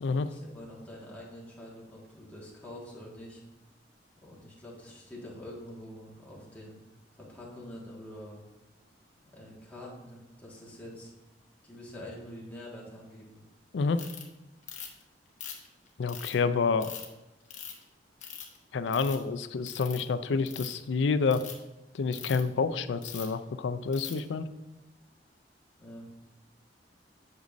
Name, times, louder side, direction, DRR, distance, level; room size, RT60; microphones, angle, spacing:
voice 1, 0.3-3.4 4.2-6.8 7.1-8.4 9.2-11.1 11.6-13.4 25.8-26.1, left 1 dB, 10° left, -5 dB, 1.7 m, -46 dB
Ratchet pawl, 14.0-14.2 14.7-15.0 15.4-16.3 16.8-17.1 17.5-17.8 18.2-18.6 18.9-19.2 19.7-20.0 20.4-20.8 21.3-21.5 22.1-22.4 23.0-23.3 23.9-24.2, left 8 dB, 45° left, 1.1 m, -41 dB
voice 2, 16.0-16.9 18.7-21.4 21.9-24.5, left 4 dB, 80° left, 12 dB, 0.4 m, -28 dB
8.1 x 6.4 x 2.6 m, 1.0 s
head